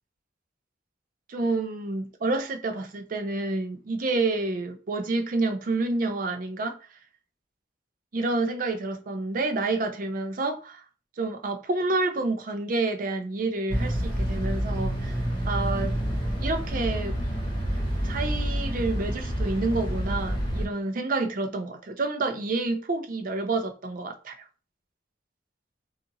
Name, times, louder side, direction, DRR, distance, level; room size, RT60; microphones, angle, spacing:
voice 1, 1.3-6.8 8.1-10.8 11.2-16.0 16.4-17.2 18.0-24.4, right 3 dB, 50° right, 0.4 m, -29 dB
sound 1, 13.7-20.7, equal, 25° left, 1.2 m, -28 dB
2.8 x 2.4 x 2.7 m
head